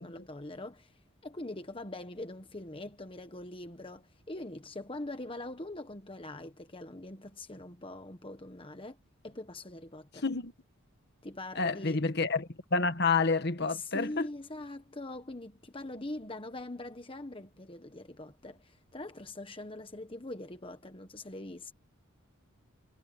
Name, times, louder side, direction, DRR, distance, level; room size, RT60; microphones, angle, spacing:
voice 1, 0.0-9.0 9.2-10.2 11.2-12.0 13.6-21.7, left 2 dB, 25° left, 1.2 m, -43 dB
voice 2, 11.5-14.3, left 4 dB, 50° left, 1.6 m, -29 dB
head